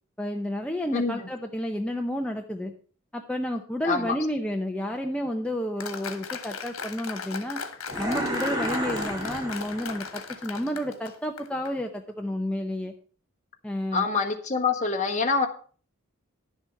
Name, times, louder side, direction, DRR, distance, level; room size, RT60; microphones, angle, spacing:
voice 1, 0.2-2.7 3.1-7.6 8.0-12.9 13.6-14.1, left 1 dB, 5° left, 2 dB, 0.6 m, -31 dB
voice 2, 3.8-4.2 13.9-15.5, left 4 dB, 35° left, 4 dB, 1.4 m, -25 dB
Applause, 5.8-11.7, left 5 dB, 75° left, 1.6 m, -37 dB
sound 1, 7.9-10.2, right 1 dB, 20° right, 1.9 m, -31 dB
11.0 x 7.3 x 5.7 m, 0.42 s
head